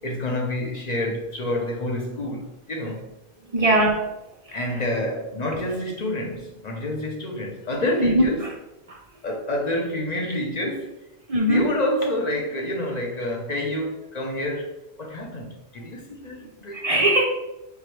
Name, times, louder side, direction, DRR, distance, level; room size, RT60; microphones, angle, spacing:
voice 1, 0.0-3.0 4.5-8.5 9.2-11.0 11.5-14.7 15.0-16.9, left 1 dB, 45° left, 0 dB, 0.7 m, -28 dB
voice 2, 3.5-4.0 8.0-8.5 11.3-11.7 16.7-17.2, right 1 dB, 50° right, 1 dB, 0.4 m, -20 dB
4.8 x 3.5 x 3.0 m, 0.97 s
omnidirectional pair, 1.2 m